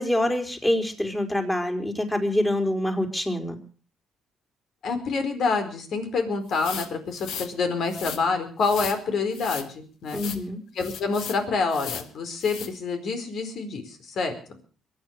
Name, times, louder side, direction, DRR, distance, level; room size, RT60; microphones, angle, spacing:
voice 1, 0.0-3.6 10.1-10.6, left 1 dB, 10° left, 4 dB, 4.2 m, -25 dB
voice 2, 4.8-10.2 10.7-14.3, left 4 dB, 65° left, 7 dB, 4.4 m, -27 dB
sound 1, 6.5-7.5 7.9-8.2 8.6-9.0 9.3-9.7 10.1-10.4 10.8-11.4 11.7-12.1 12.4-12.7, left 8 dB, 85° left, 1.6 m, -36 dB
22.5 x 9.4 x 6.5 m, 0.43 s
cardioid pair, 90°, 0 cm